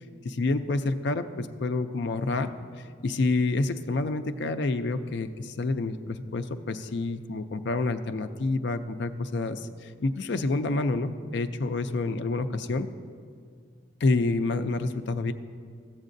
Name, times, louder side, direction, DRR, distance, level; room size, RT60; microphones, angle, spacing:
voice 1, 0.2-2.5 2.8-12.9 14.0-15.3, left 3 dB, 60° left, 9 dB, 0.4 m, -28 dB
14.5 x 7.3 x 2.6 m, 2.2 s
head